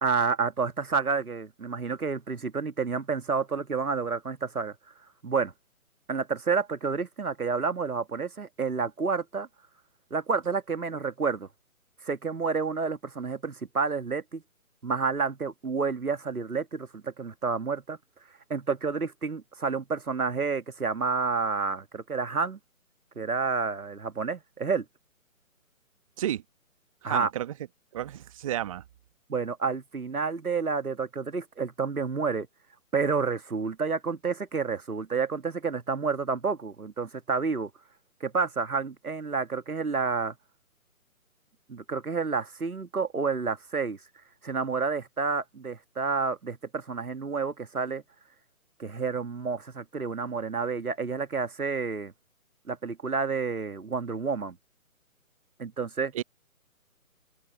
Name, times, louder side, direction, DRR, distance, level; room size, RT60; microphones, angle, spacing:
voice 1, 0.0-4.7 5.2-5.5 6.1-9.5 10.1-11.5 12.0-14.4 14.8-18.0 18.5-22.6 23.1-24.8 27.0-27.3 29.3-32.5 32.9-37.7 38.2-40.3 41.7-44.0 44.4-48.0 48.8-52.1 52.7-54.6 55.6-56.1, right 5 dB, 85° right, 1.6 m, -29 dB
voice 2, 27.0-27.5 27.9-28.8 56.1-56.2, right 12 dB, 25° right, 1.1 m, -31 dB
open air
figure-of-eight pair, 145°, 43 cm